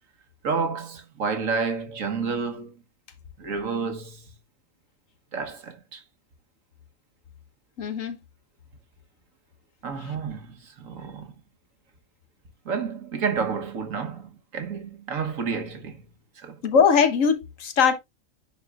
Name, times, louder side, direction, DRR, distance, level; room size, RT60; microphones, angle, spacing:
voice 1, 0.4-2.7 3.4-4.3 5.3-6.0 9.8-11.3 12.6-16.0 16.4-16.6, right 5 dB, 80° right, 1.5 m, -30 dB
voice 2, 7.8-8.2 10.0-10.1 16.6-18.0, left 6 dB, 75° left, 1.5 m, -21 dB
10.0 x 4.6 x 2.4 m
omnidirectional pair, 1.4 m